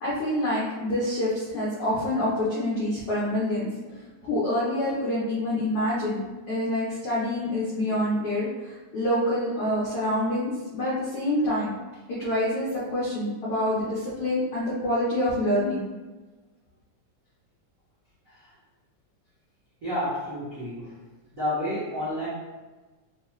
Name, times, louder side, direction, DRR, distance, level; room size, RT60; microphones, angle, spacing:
voice 1, 0.0-3.7 4.2-6.2 6.5-11.7 12.1-12.7 12.9-15.8, left 1 dB, 80° left, -8 dB, 1.2 m, -26 dB
voice 2, 19.8-20.9 21.3-22.3, left 1 dB, 75° right, -12 dB, 0.7 m, -31 dB
5.1 x 2.4 x 3.0 m, 1.2 s
omnidirectional pair, 3.7 m